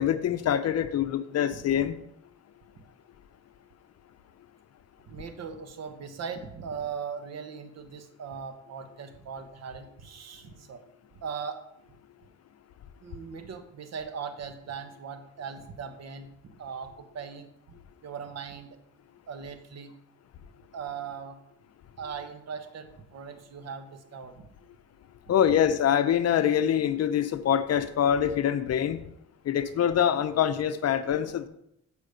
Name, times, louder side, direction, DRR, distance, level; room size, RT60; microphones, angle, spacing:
voice 1, 0.0-2.0 25.3-29.0 29.4-31.5, left 9 dB, 55° left, 0.7 m, -25 dB
voice 2, 1.5-1.9 2.8-2.9 5.0-10.8 11.2-11.6 13.0-16.3 16.6-18.8 19.3-19.9 20.7-21.4 22.0-24.5, right 6 dB, 60° right, 1.1 m, -39 dB
8.2 x 5.1 x 5.1 m
cardioid pair, 90°, 30 cm